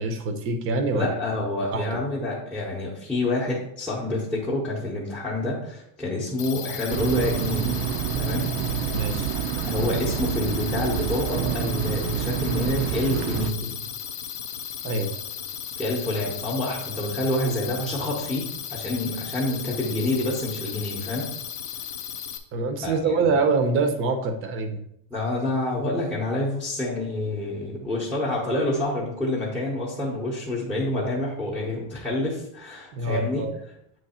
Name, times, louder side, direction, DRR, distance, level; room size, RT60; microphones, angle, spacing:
voice 1, 0.0-1.2 1.7-2.0 8.9-9.3 14.8-15.1 22.5-24.8 32.9-33.5, right 3 dB, 30° right, 6 dB, 0.6 m, -25 dB
voice 2, 0.9-7.8 8.1-8.5 9.6-13.8 15.8-21.3 22.8-23.3 25.1-33.4, left 2 dB, 5° left, -7 dB, 0.8 m, -28 dB
sound 1, 6.4-22.4, left 9 dB, 45° left, 0.6 m, -36 dB
sound 2, 6.9-13.5, right 9 dB, 85° right, 0.6 m, -27 dB
7.7 x 3.1 x 4.2 m, 0.75 s
cardioid pair, 175°, 42 cm